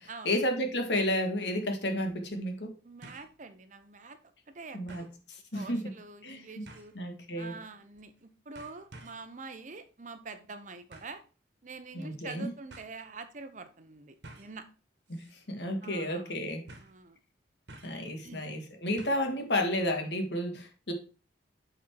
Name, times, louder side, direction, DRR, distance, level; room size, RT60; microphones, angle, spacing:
voice 1, 0.0-2.7 4.7-5.1 5.5-5.8 6.2-6.7 6.9-7.6 11.9-12.5 15.1-16.7 17.8-20.9, left 1 dB, 70° left, 4 dB, 1.7 m, -32 dB
voice 2, 2.8-4.2 4.5-5.1 5.5-6.9 7.4-11.2 11.6-14.6 15.8-16.3 16.8-17.2 18.2-18.4, right 4 dB, 45° right, 9 dB, 0.8 m, -46 dB
sound 1, 3.0-3.4 3.8-3.9 4.9-5.2 6.6-7.0 8.0-8.2 8.5-9.3 10.9-11.2 12.2-12.3 12.7-12.9 14.2-14.6 15.1-15.3 15.6-15.7 16.7-17.0 17.7-18.1 19.0-19.3 19.6-19.7, right 2 dB, 70° right, 1.5 m, -51 dB
7.3 x 4.4 x 4.6 m, 0.35 s
head